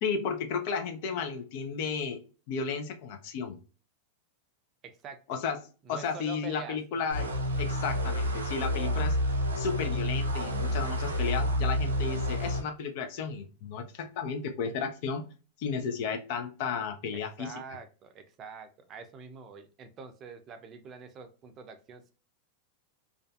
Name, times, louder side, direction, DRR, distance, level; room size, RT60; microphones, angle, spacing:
voice 1, 0.0-2.2 2.5-3.6 5.3-5.6 5.9-7.3 7.6-9.2 9.6-15.3 15.6-17.5, left 5 dB, 55° left, 0.5 m, -33 dB
voice 2, 4.8-5.4 5.8-6.8 17.1-22.1, right 5 dB, 35° right, 0.5 m, -45 dB
sound 1, 7.1-12.6, equal, 90° right, 0.5 m, -29 dB
2.5 x 2.2 x 2.3 m
hypercardioid pair, 95°, 0 cm